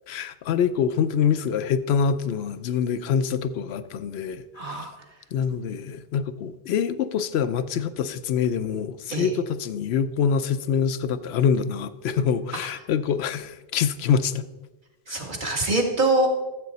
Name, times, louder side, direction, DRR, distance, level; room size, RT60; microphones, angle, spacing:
voice 1, 0.1-4.9 5.3-14.4 15.1-15.2, left 7 dB, 75° left, 13 dB, 0.9 m, -25 dB
voice 2, 4.6-4.9 9.1-9.3 15.1-16.3, right 2 dB, 50° right, 1 dB, 1.7 m, -24 dB
13.5 x 7.6 x 4.1 m, 1.1 s
omnidirectional pair, 1.1 m